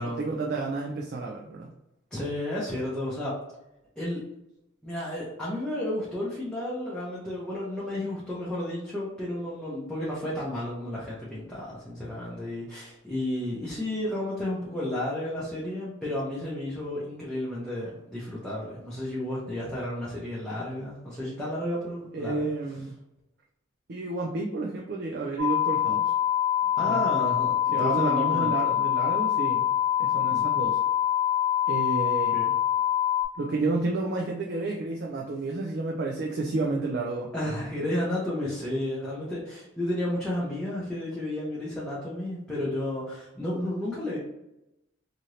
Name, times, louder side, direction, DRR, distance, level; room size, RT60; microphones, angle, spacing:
voice 1, 0.0-1.7 22.1-23.0 23.9-26.1 26.8-27.0 27.7-29.7 30.0-30.8 31.7-32.4 33.4-37.3, right 3 dB, 55° right, 0 dB, 0.4 m, -30 dB
voice 2, 2.1-3.4 4.0-4.2 4.8-22.5 26.8-28.9 30.3-30.5 32.3-32.5 37.3-44.2, left 1 dB, 5° left, -9 dB, 0.7 m, -32 dB
sound 1, 25.4-33.2, left 11 dB, 35° left, 1.0 m, -25 dB
2.8 x 2.5 x 3.1 m, 0.90 s
head